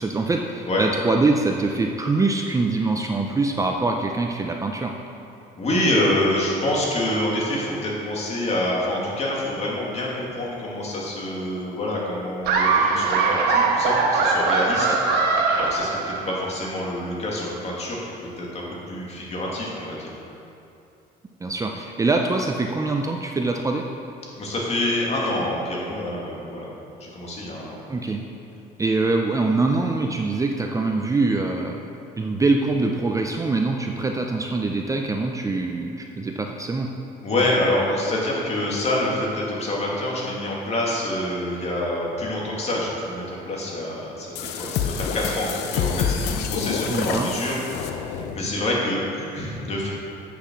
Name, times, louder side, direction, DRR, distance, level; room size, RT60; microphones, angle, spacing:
voice 1, 0.0-4.9 14.9-15.0 21.4-23.8 27.9-28.2 28.8-31.8 32.2-36.9 46.9-47.3, right 3 dB, 20° right, 2 dB, 0.5 m, -24 dB
voice 2, 5.6-14.9 15.2-18.1 18.4-18.6 18.9-20.1 24.3-26.7 27.0-27.8 37.2-49.9, left 1 dB, 40° left, -4 dB, 2.4 m, -26 dB
Laughter, 12.4-16.5, right 4 dB, 75° right, 1.2 m, -21 dB
sound 1, 44.4-48.5, left 7 dB, 80° left, 0.7 m, -27 dB
7.8 x 6.9 x 6.2 m, 2.7 s
cardioid pair, 110°, 17 cm